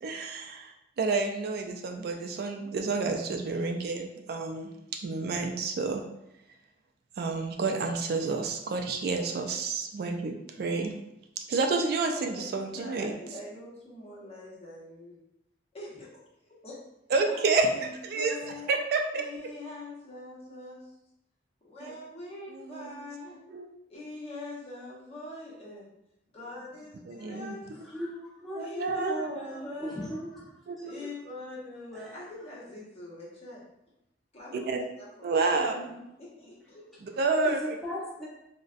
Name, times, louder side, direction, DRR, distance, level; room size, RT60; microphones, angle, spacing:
voice 1, 0.0-4.7 5.0-6.0 7.2-10.9 11.5-13.1 17.1-18.3 18.7-19.2 21.8-21.9 22.5-23.0 23.5-23.7 27.1-27.6 28.5-29.1 30.7-30.9 34.5-34.8 35.2-35.7 37.0-37.6, right 3 dB, 60° right, 3 dB, 0.3 m, -29 dB
voice 2, 12.1-15.2 15.7-16.2 16.6-16.8 17.2-18.8 19.1-21.0 21.6-23.5 23.9-25.9 26.3-27.9 28.6-30.2 30.8-33.6 34.3-37.2, left 2 dB, 35° left, -6 dB, 0.9 m, -44 dB
voice 3, 27.7-30.4 31.0-31.1 31.9-32.3 35.7-36.1 37.3-38.3, equal, ahead, -8 dB, 0.9 m, -38 dB
3.9 x 2.1 x 2.4 m, 0.84 s
head